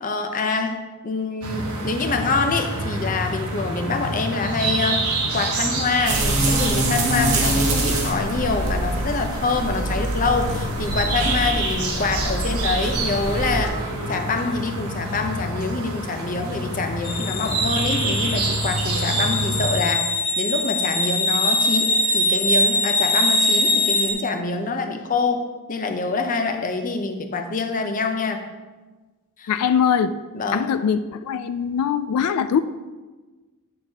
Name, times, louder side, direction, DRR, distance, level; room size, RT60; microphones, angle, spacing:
voice 1, 0.0-5.1 5.3-13.7 14.1-28.4 29.4-29.5 30.3-30.7, left 3 dB, 35° left, 5 dB, 0.6 m, -25 dB
sound 1, 1.4-19.8, right 2 dB, 90° right, 1.3 m, -27 dB
sound 2, 6.1-13.7, right 2 dB, 70° right, 1.6 m, -25 dB
sound 3, 17.0-24.1, left 1 dB, 70° left, 1.1 m, -22 dB
voice 2, 29.5-30.1 30.5-31.0 31.3-32.6, left 7 dB, 90° left, 12 dB, 0.3 m, -21 dB
8.8 x 6.6 x 2.9 m, 1.3 s
head